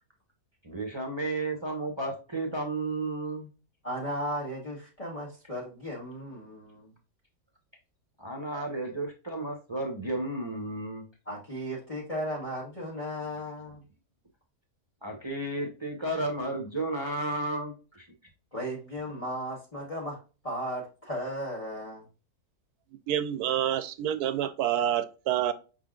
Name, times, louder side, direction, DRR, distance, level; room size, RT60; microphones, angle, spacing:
voice 1, 0.6-3.5 8.2-11.0 15.0-18.0, right 2 dB, 20° right, 0.8 m, -33 dB
voice 2, 3.8-6.9 11.2-13.8 18.5-22.0, equal, 25° left, 1.4 m, -36 dB
voice 3, 23.1-25.5, right 11 dB, 90° right, 1.2 m, -28 dB
5.5 x 3.8 x 2.4 m
omnidirectional pair, 1.6 m